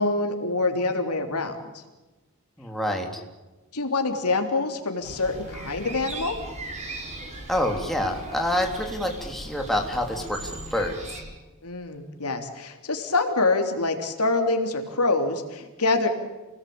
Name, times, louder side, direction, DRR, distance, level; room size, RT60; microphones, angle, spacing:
voice 1, 0.0-1.6 3.7-6.4 11.6-16.1, left 3 dB, 85° left, 5 dB, 3.5 m, -25 dB
voice 2, 2.6-3.2 7.5-11.2, left 1 dB, ahead, 2 dB, 3.2 m, -27 dB
sound 1, 5.0-11.2, right 1 dB, 30° right, 6.1 m, -38 dB
29.0 x 19.5 x 8.7 m, 1.1 s
head